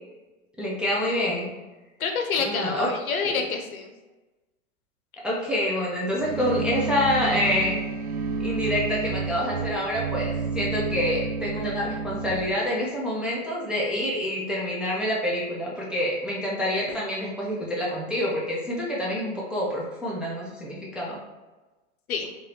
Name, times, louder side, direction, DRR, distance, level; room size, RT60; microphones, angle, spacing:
voice 1, 0.6-1.5 2.4-2.9 3.2-3.5 5.2-7.8 8.4-21.2, left 1 dB, ahead, -6 dB, 0.3 m, -27 dB
voice 2, 2.0-3.9 22.1-22.3, left 5 dB, 90° left, 3 dB, 0.6 m, -27 dB
sound 1, 6.2-12.5, right 4 dB, 75° right, 0.6 m, -30 dB
2.6 x 2.5 x 3.2 m, 1.1 s
hypercardioid pair, 95°, 42 cm